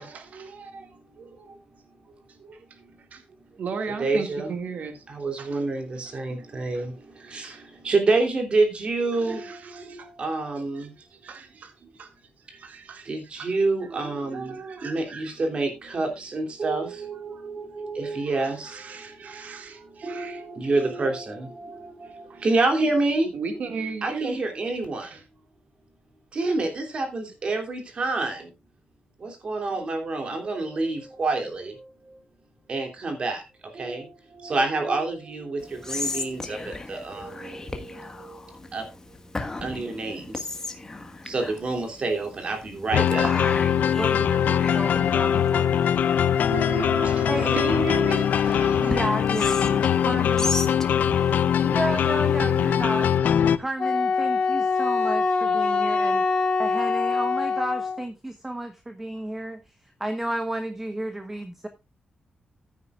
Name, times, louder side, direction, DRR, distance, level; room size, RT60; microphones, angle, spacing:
voice 1, 0.0-1.6 2.1-2.8 3.1-3.2 3.5-5.7 6.0-6.2 6.7-6.9 7.1-7.7 9.1-10.4 10.8-15.5 17.3-17.5 18.0-20.5 20.7-20.9 22.0-22.6 23.3-24.4 25.0-25.2 46.5-49.0 51.7-52.2, right 4 dB, 60° right, 2.0 m, -37 dB
voice 2, 4.0-4.5 5.2-6.9 7.3-7.5 7.8-9.4 10.2-10.9 13.1-14.5 14.8-18.7 20.0-21.7 22.4-23.3 24.0-25.1 26.3-28.4 29.2-31.7 32.7-33.4 33.8-34.0 34.4-35.6 35.9-37.5 38.7-38.8 39.6-40.2 41.3-43.3, right 3 dB, 40° right, 2.9 m, -27 dB
Whispering, 35.6-53.2, left 2 dB, 20° left, 1.5 m, -36 dB
sound 1, 42.9-53.6, left 8 dB, 80° left, 0.6 m, -22 dB
voice 3, 43.9-46.3 47.3-47.6 48.8-50.5 51.6-53.1 53.6-59.6 60.0-61.7, right 1 dB, 10° right, 1.0 m, -32 dB
Wind instrument woodwind instrument, 53.8-58.1, left 4 dB, 35° left, 2.1 m, -24 dB
15.0 x 9.5 x 2.4 m
wide cardioid pair, 165°, 3 cm